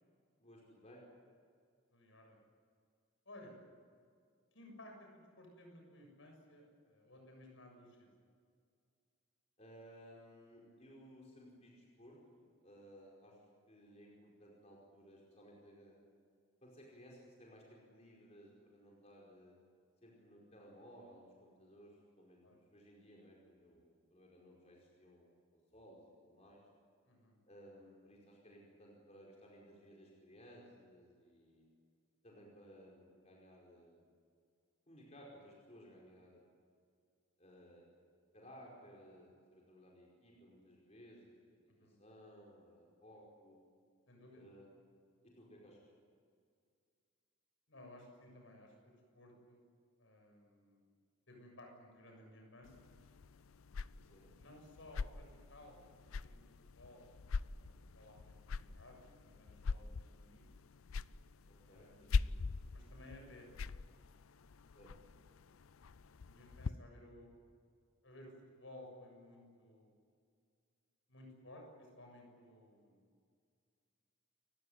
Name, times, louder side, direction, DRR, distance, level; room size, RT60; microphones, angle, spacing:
voice 1, 0.4-1.0 9.6-13.4 13.7-16.0 16.6-19.5 20.0-26.6 27.5-31.6 32.2-34.1 34.9-36.4 37.4-37.8 38.3-43.6 44.3-44.7 45.2-45.9 54.1-54.3 61.4-62.4 64.7-64.9, equal, 30° left, -2 dB, 4.9 m, -59 dB
voice 2, 1.9-2.4 3.3-3.5 4.5-8.1 22.4-22.6 27.0-27.4 41.7-42.0 44.1-44.4 47.7-48.7 49.1-49.6 50.0-50.8 51.3-52.7 54.4-55.8 56.2-56.4 56.7-57.0 57.4-60.4 61.6-63.7 66.2-67.3 68.0-69.9 71.1-73.1, left 1 dB, 65° left, 2 dB, 7.3 m, -57 dB
sound 1, 52.6-66.7, left 4 dB, 85° left, 0.5 m, -43 dB
29.5 x 15.5 x 9.4 m, 2.2 s
head